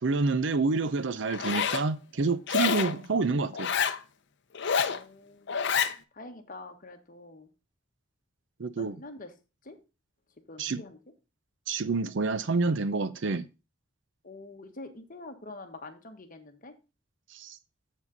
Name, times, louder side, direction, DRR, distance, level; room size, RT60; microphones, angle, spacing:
voice 1, 0.0-3.7 8.6-9.0 10.6-10.8 11.7-13.5 17.3-17.6, right 3 dB, 65° right, 0.6 m, -28 dB
Zipper (clothing), 1.3-1.9 2.5-3.0 3.5-4.0 4.5-5.0 5.5-5.9, left 7 dB, 60° left, 0.7 m, -27 dB
voice 2, 4.7-7.5 8.7-9.3 9.6-9.8 10.5-11.0 14.2-16.7, left 2 dB, 45° left, 1.4 m, -46 dB
7.4 x 7.2 x 4.0 m
head